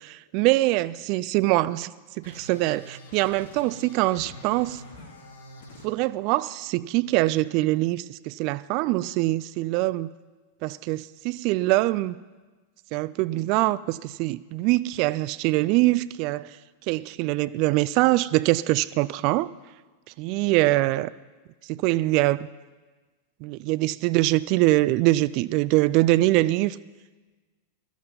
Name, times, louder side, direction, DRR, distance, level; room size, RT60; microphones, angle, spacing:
voice 1, 0.3-1.9 2.2-4.8 5.8-10.1 10.6-12.2 12.9-16.6 16.9-19.5 20.2-21.1 21.7-22.5 23.4-26.8, right 19 dB, 45° right, 18 dB, 0.4 m, -23 dB
sound 1, 2.2-5.9, left 1 dB, 60° left, 2.2 m, -45 dB
17.5 x 13.5 x 5.4 m, 1.3 s
figure-of-eight pair, 90°, 0 cm